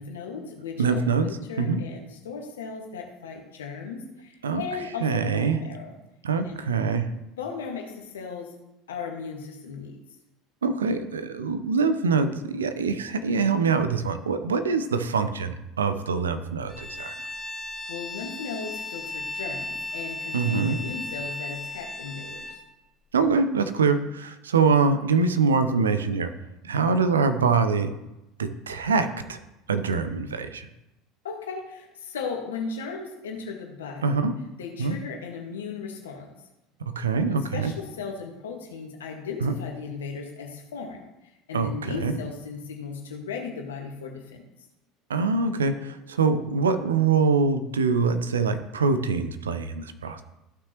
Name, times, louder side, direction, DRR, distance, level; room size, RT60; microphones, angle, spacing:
voice 1, 0.0-5.9 6.4-6.6 7.4-8.5 8.9-10.0 17.9-22.6 31.2-34.2 34.6-36.3 37.3-44.5, left 5 dB, 70° left, 2 dB, 1.7 m, -36 dB
voice 2, 0.8-1.3 1.6-1.8 4.4-4.6 5.0-5.6 6.2-7.1 10.6-17.1 20.3-20.9 23.1-26.3 26.6-27.9 28.4-29.4 29.7-30.7 34.0-34.3 34.8-35.0 36.9-37.7 39.4-39.6 41.5-42.1 45.1-50.2, right 4 dB, 75° right, 10 dB, 0.7 m, -24 dB
Bowed string instrument, 16.7-22.6, left 2 dB, ahead, 2.3 m, -35 dB
14.5 x 6.1 x 3.1 m, 0.93 s
figure-of-eight pair, 70°, 0 cm